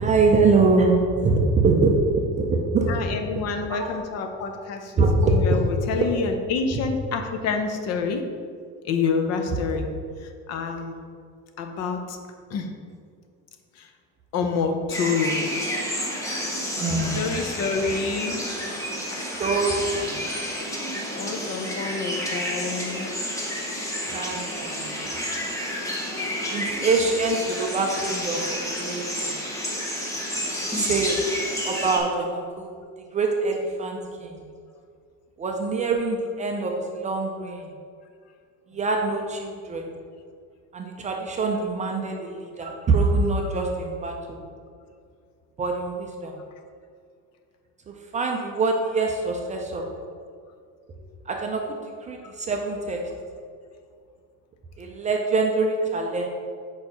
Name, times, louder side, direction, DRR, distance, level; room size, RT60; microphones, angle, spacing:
voice 1, 0.0-3.2 3.7-4.0 5.0-5.6 5.9-6.1 9.5-9.6 16.8-17.2 19.2-20.2 24.1-25.0 26.5-29.4 30.6-31.4 31.6-32.7 33.0-34.4 35.4-37.8 38.7-39.9 40.7-44.4 45.6-46.4 47.9-49.9 51.3-53.1 54.8-56.3, right 3 dB, 20° right, 1 dB, 0.4 m, -24 dB
voice 2, 2.9-4.9 5.2-8.3 8.8-9.9 10.5-11.0 11.6-12.2 12.5-12.7 13.8-13.9 14.3-15.4 17.2-18.4 19.1-19.2 21.1-23.1 25.0-25.3, left 5 dB, 50° left, 6 dB, 0.6 m, -28 dB
sound 1, 14.9-32.0, equal, 10° left, 0.7 m, -30 dB
4.8 x 4.5 x 5.3 m, 2.1 s
cardioid pair, 165°, 34 cm